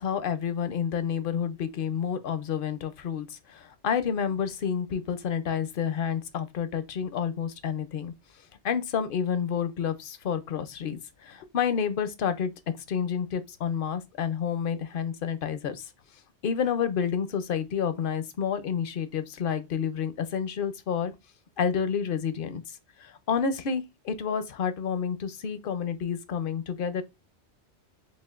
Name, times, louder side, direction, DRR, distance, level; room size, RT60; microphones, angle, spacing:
voice 1, 0.0-8.1 8.6-12.5 12.9-15.9 16.4-21.1 21.6-22.6 23.0-27.0, left 7 dB, 60° left, 0.7 m, -29 dB
6.2 x 2.4 x 2.4 m
omnidirectional pair, 1.1 m